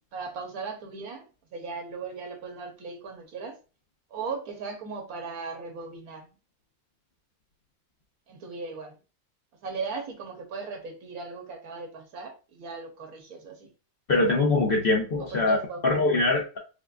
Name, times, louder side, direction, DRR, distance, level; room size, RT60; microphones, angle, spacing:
voice 1, 0.1-1.3 1.5-3.6 4.1-6.3 8.3-9.0 9.6-13.7 15.3-16.1, right 4 dB, 85° right, 1.4 m, -37 dB
voice 2, 14.1-15.6 15.8-16.6, left 2 dB, 50° left, 0.8 m, -23 dB
5.0 x 2.1 x 2.3 m
omnidirectional pair, 1.5 m